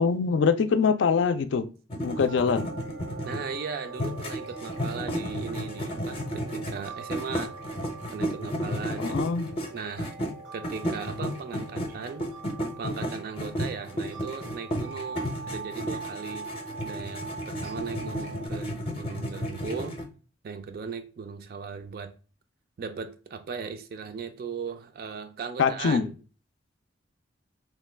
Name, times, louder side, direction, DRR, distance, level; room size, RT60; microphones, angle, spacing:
voice 1, 0.0-1.6 2.0-2.7 9.0-9.5 25.6-26.1, left 5 dB, 75° left, 0.4 m, -23 dB
sound 1, 1.9-3.6 3.9-10.3 10.6-20.0, equal, 30° left, 0.6 m, -33 dB
sound 2, 2.0-18.5, right 4 dB, 80° right, 0.7 m, -43 dB
voice 2, 3.3-7.6 8.1-9.2 9.6-10.1 10.5-12.3 12.8-16.5 16.8-20.0 20.4-22.1 22.8-26.2, right 5 dB, 50° right, 0.3 m, -37 dB
3.0 x 2.2 x 3.2 m
head